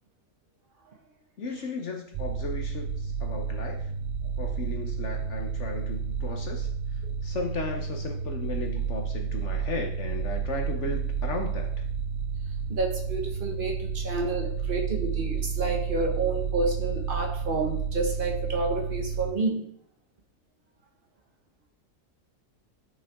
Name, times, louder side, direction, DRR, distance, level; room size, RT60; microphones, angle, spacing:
voice 1, 1.4-3.9 4.4-6.7 7.2-11.8, left 3 dB, 60° left, 3 dB, 1.2 m, -35 dB
sound 1, 2.1-19.3, right 6 dB, 65° right, 0.5 m, -31 dB
voice 2, 12.7-19.6, right 3 dB, 40° right, 2 dB, 1.5 m, -29 dB
11.0 x 6.1 x 3.6 m, 0.68 s
omnidirectional pair, 1.4 m